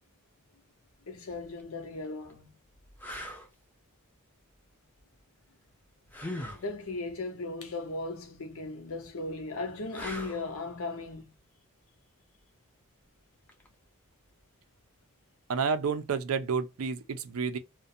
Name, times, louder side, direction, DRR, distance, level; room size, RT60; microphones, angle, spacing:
voice 1, 1.1-2.5 6.5-11.3, left 3 dB, 70° left, 0.7 m, -37 dB
sound 1, 1.4-1.6 2.3-2.4 3.0-3.5 6.1-6.7 9.9-10.5 13.5-13.7, left 1 dB, 10° left, 0.5 m, -39 dB
voice 2, 15.5-17.6, right 5 dB, 70° right, 0.5 m, -30 dB
2.4 x 2.2 x 2.7 m
head